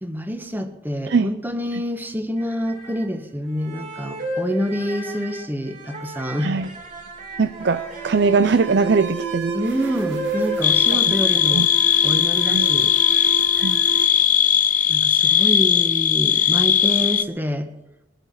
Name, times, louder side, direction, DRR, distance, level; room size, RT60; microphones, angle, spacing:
voice 1, 0.0-6.5 9.5-11.7 12.0-12.9 14.9-17.7, equal, 10° right, 7 dB, 1.3 m, -27 dB
sound 1, 2.4-3.1 3.6-10.6, right 2 dB, 45° right, 2.9 m, -33 dB
voice 2, 6.4-6.8 7.4-9.6 9.8-10.0 10.9-11.2 11.5-11.7 12.4-12.7 13.6-13.8, right 4 dB, 65° right, 12 dB, 0.5 m, -21 dB
Alarm, 6.6-15.2, right 5 dB, 90° right, 2.0 m, -34 dB
sound 2, 10.6-17.2, left 9 dB, 45° left, 0.6 m, -18 dB
22.0 x 9.1 x 5.8 m, 0.92 s
head